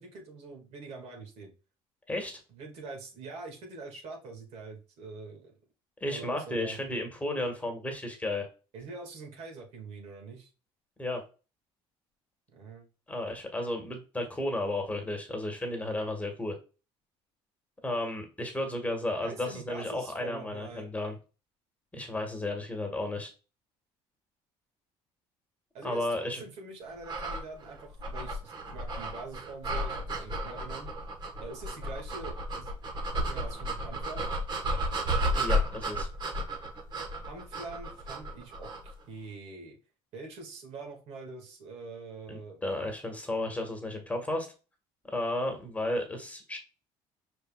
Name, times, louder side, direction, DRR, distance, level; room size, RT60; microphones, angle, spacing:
voice 1, 0.0-1.5 2.5-5.5 6.1-6.8 8.7-10.5 12.5-12.9 19.2-20.9 25.7-30.9 31.4-32.8 33.3-34.3 37.2-39.8 40.1-42.6, right 3 dB, 65° right, 1 dB, 1.8 m, -44 dB
voice 2, 2.1-2.4 6.0-8.5 11.0-11.2 13.1-16.6 17.8-21.2 21.9-23.3 25.8-26.4 35.3-36.1 42.3-44.5 45.1-46.6, left 1 dB, 10° left, 4 dB, 1.4 m, -33 dB
sound 1, 27.0-38.9, equal, 40° right, 1.2 m, -33 dB
5.3 x 4.3 x 2.3 m, 0.33 s
cardioid pair, 100°, 12 cm